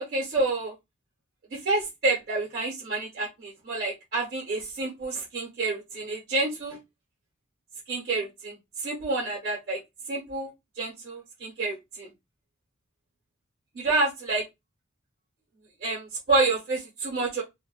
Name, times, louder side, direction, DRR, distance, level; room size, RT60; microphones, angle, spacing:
voice 1, 0.1-0.7 1.5-6.8 7.9-8.6 8.8-9.8 10.1-10.5 10.8-12.1 13.7-14.4 15.8-17.4, right 3 dB, 50° right, -5 dB, 1.1 m, -28 dB
2.5 x 2.2 x 2.4 m, 0.20 s
head